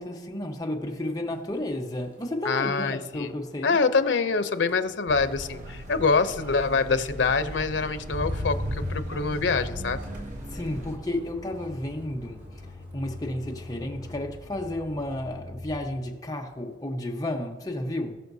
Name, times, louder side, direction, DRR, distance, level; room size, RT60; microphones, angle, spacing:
voice 1, 0.0-3.8 10.5-18.2, left 1 dB, 20° left, 1.0 m, -32 dB
Motor vehicle (road), 0.9-1.2 1.5-16.0 16.4-16.8, left 1 dB, 75° right, 3.6 m, -40 dB
voice 2, 2.4-3.3 3.6-10.0, left 4 dB, 90° left, 0.7 m, -25 dB
sound 1, 5.1-11.0, equal, 40° right, 1.0 m, -39 dB
20.0 x 6.7 x 2.7 m
head